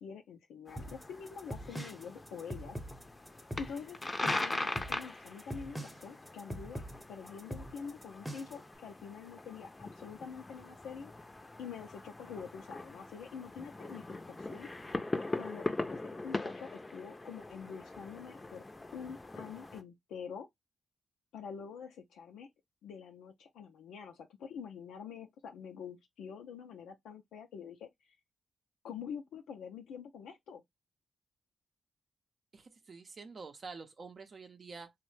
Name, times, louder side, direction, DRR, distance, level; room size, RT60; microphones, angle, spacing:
voice 1, 0.0-2.8 3.6-11.1 11.6-14.7 15.3-18.6 18.9-20.5 21.3-22.5 22.8-28.2 28.8-30.6, left 6 dB, 90° left, 0.4 m, -46 dB
sound 1, 0.7-19.8, left 2 dB, 30° left, 0.5 m, -41 dB
sound 2, 0.8-8.7, right 1 dB, 10° right, 0.7 m, -43 dB
voice 2, 32.5-34.9, right 4 dB, 55° right, 0.6 m, -48 dB
3.0 x 2.1 x 3.1 m
supercardioid pair, 50°, 0 cm